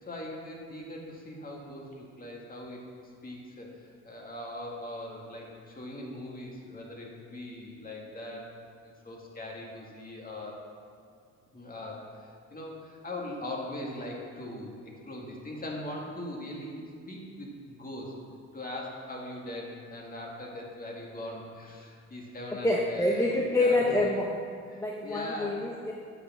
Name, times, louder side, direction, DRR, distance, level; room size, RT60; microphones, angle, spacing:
voice 1, 0.0-8.6 8.8-10.6 11.5-14.8 15.1-18.1 18.5-23.3 23.6-23.9 24.7-25.7, left 1 dB, 30° left, -2 dB, 2.1 m, -40 dB
voice 2, 22.6-24.4 24.8-25.9, left 2 dB, 10° left, -2 dB, 0.9 m, -26 dB
8.2 x 6.2 x 6.2 m, 2.3 s
cardioid pair, 90°, 30 cm